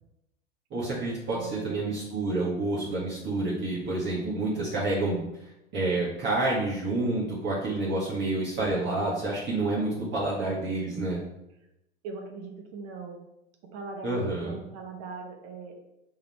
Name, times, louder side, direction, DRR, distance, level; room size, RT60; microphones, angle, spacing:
voice 1, 0.7-11.2 14.0-14.6, right 2 dB, 35° right, -7 dB, 1.8 m, -29 dB
voice 2, 1.3-1.9 10.3-10.8 12.0-13.2 13.7-15.7, right 4 dB, 50° right, 4 dB, 1.2 m, -40 dB
5.6 x 3.8 x 4.4 m, 0.88 s
hypercardioid pair, 90°, 33 cm